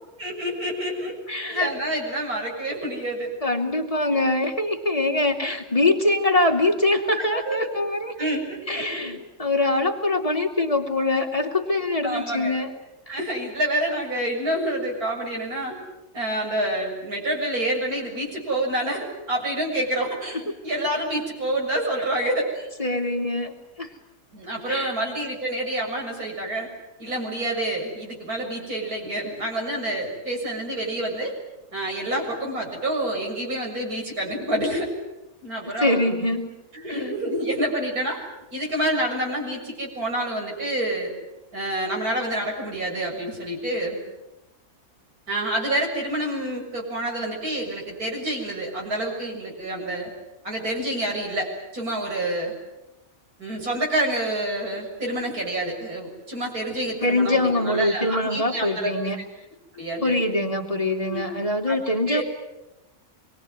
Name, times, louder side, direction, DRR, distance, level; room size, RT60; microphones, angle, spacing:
voice 1, 0.2-1.1 1.5-3.3 4.1-4.2 7.3-7.7 8.2-9.1 12.0-12.6 13.1-15.8 16.1-22.7 24.3-26.7 27.0-31.3 31.7-34.9 35.4-36.0 36.7-38.2 38.5-41.1 41.5-44.0 45.3-50.1 50.4-52.5 53.4-59.3 59.7-60.2 61.0-61.3 61.7-61.8 62.1-62.2, right 1 dB, 80° right, -1 dB, 7.6 m, -28 dB
voice 2, 1.3-1.7 3.4-8.3 8.7-12.7 13.1-13.2 22.8-23.9 24.7-24.9 35.8-36.5 36.9-37.0 57.0-59.2 60.0-62.2, left 2 dB, 25° left, 3 dB, 2.9 m, -23 dB
26.0 x 22.5 x 9.4 m, 0.94 s
omnidirectional pair, 1.6 m